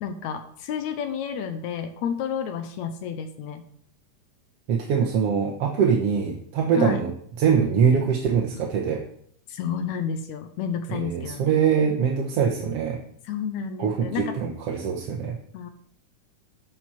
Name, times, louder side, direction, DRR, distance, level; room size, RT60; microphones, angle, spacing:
voice 1, 0.0-3.6 6.8-7.0 9.5-11.6 13.3-14.4 15.5-15.7, left 7 dB, 80° left, 8 dB, 2.2 m, -30 dB
voice 2, 4.7-7.1 7.4-9.0 10.9-13.0 13.8-15.4, right 7 dB, 65° right, 1 dB, 1.9 m, -23 dB
12.0 x 7.7 x 4.3 m, 0.64 s
omnidirectional pair, 3.3 m